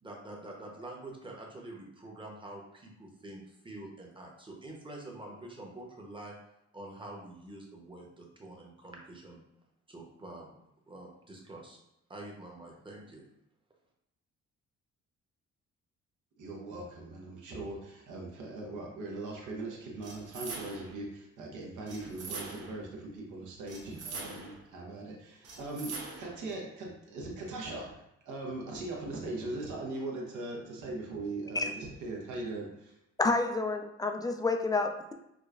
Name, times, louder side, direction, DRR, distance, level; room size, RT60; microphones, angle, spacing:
voice 1, 0.0-6.4 6.7-9.4 9.9-10.5 10.9-11.8 12.1-13.2, right 2 dB, 15° right, -1 dB, 0.9 m, -46 dB
voice 2, 16.4-32.9, right 2 dB, 80° right, -1 dB, 1.0 m, -40 dB
sound 1, 20.0-21.0 21.9-22.8 23.7-24.6 25.4-26.4, right 4 dB, 55° right, 0.8 m, -43 dB
voice 3, 33.2-35.1, left 3 dB, 15° left, 5 dB, 0.3 m, -29 dB
4.9 x 2.2 x 2.4 m, 0.82 s
cardioid pair, 90°, 30 cm